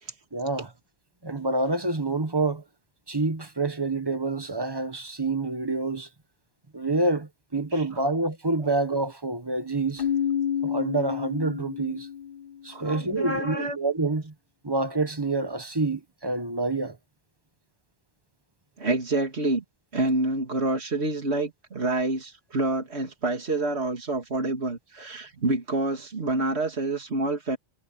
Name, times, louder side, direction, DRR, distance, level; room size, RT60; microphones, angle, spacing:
voice 1, 0.3-0.7 1.2-2.6 3.1-6.1 6.7-10.0 10.6-12.1 12.6-14.3 14.6-17.0, right 2 dB, 20° right, 1.3 m, -27 dB
Keyboard (musical), 10.0-12.6, left 9 dB, 60° left, 0.9 m, -29 dB
voice 2, 12.7-13.8 18.8-19.6 19.9-27.6, right 2 dB, 75° right, 2.6 m, -27 dB
omnidirectional pair, 1.1 m